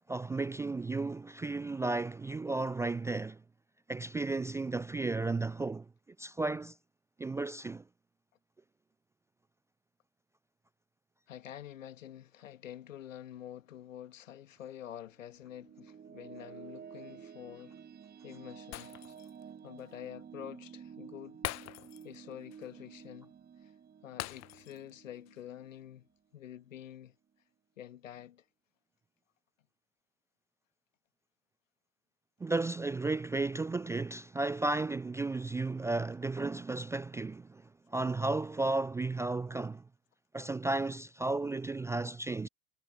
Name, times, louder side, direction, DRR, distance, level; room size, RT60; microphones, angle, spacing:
voice 1, 0.1-3.4 3.9-5.9 6.2-6.7 7.2-7.8 32.4-37.6 37.9-39.8 40.3-42.5, right 3 dB, 10° right, 0.4 m, -33 dB
voice 2, 11.3-17.8 18.2-19.2 19.6-21.4 22.0-23.3 23.6-23.7 24.0-26.1 26.3-27.2 27.8-28.4, left 11 dB, 75° left, 1.8 m, -47 dB
sound 1, 15.1-26.4, right 7 dB, 25° right, 6.2 m, -52 dB
Shatter, 18.7-19.4 19.8-19.9 21.4-22.2 22.5-22.7 24.2-24.9 25.3-25.4, left 20 dB, 40° left, 1.2 m, -42 dB
figure-of-eight pair, 80°, 39 cm